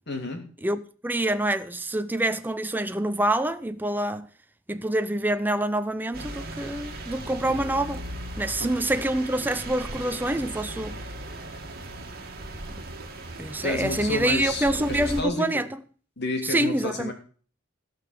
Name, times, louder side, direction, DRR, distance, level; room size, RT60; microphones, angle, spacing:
voice 1, 0.1-0.4 8.6-8.7 13.6-15.6 16.2-17.1, left 2 dB, 55° left, 3.1 m, -30 dB
voice 2, 0.6-4.3 4.7-8.0 8.4-10.9 13.4-15.7 16.4-17.1, right 1 dB, 10° right, 0.6 m, -26 dB
sound 1, 6.1-15.2, right 1 dB, 50° right, 2.0 m, -37 dB
16.5 x 5.8 x 7.5 m
head